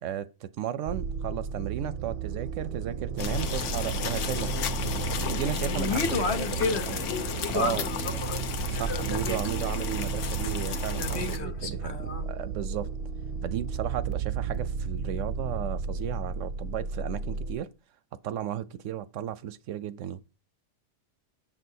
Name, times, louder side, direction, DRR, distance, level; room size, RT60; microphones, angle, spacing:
voice 1, 0.0-4.5 5.3-7.0 7.5-7.8 8.7-12.9 13.4-17.7 18.2-20.2, right 10 dB, 90° right, 0.9 m, -34 dB
sound 1, 0.9-17.6, right 5 dB, 60° right, 0.6 m, -33 dB
sound 2, 3.2-11.4, left 7 dB, 80° left, 1.0 m, -34 dB
voice 2, 5.6-8.4 8.7-9.4 11.0-12.2, left 5 dB, 60° left, 1.3 m, -32 dB
7.0 x 6.2 x 2.7 m
omnidirectional pair, 1.3 m